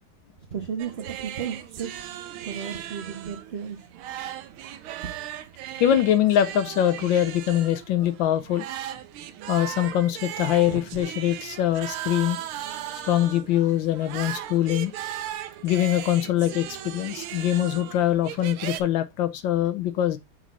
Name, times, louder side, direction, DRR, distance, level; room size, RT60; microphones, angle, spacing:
voice 1, 0.5-1.9 2.4-3.8, right 7 dB, 50° right, 0.8 m, -33 dB
sound 1, 0.8-18.8, right 11 dB, 90° right, 1.5 m, -37 dB
voice 2, 5.8-8.6 9.5-12.4 13.0-14.9 15.6-20.2, left 11 dB, 75° left, 1.3 m, -23 dB
6.2 x 4.0 x 4.0 m
omnidirectional pair, 2.3 m